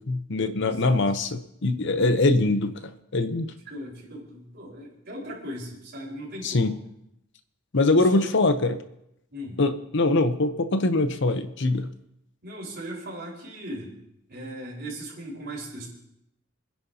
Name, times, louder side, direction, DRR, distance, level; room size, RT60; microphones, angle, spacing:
voice 1, 0.0-2.7 3.1-3.5 6.4-6.7 7.7-8.8 9.6-11.9, left 2 dB, 60° left, 9 dB, 0.9 m, -23 dB
voice 2, 0.6-1.0 1.9-2.2 3.7-6.8 8.0-8.2 9.3-9.6 12.4-13.9 14.3-15.9, equal, 55° right, -3 dB, 4.8 m, -38 dB
28.0 x 10.5 x 2.9 m, 0.79 s
head